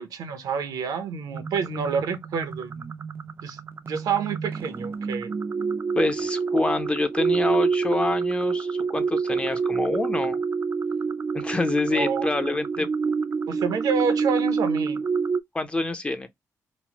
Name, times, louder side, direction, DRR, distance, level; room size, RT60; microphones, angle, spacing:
voice 1, 0.0-2.9 3.4-3.6 3.8-5.4 11.9-12.3 12.8-12.9 13.5-15.0, right 6 dB, 85° right, 0.7 m, -28 dB
sound 1, 1.3-15.4, right 5 dB, 35° right, 0.4 m, -27 dB
voice 2, 6.0-10.4 11.3-12.9 15.5-16.3, left 2 dB, 15° left, 0.5 m, -26 dB
3.0 x 2.0 x 2.9 m
cardioid pair, 80°, 6 cm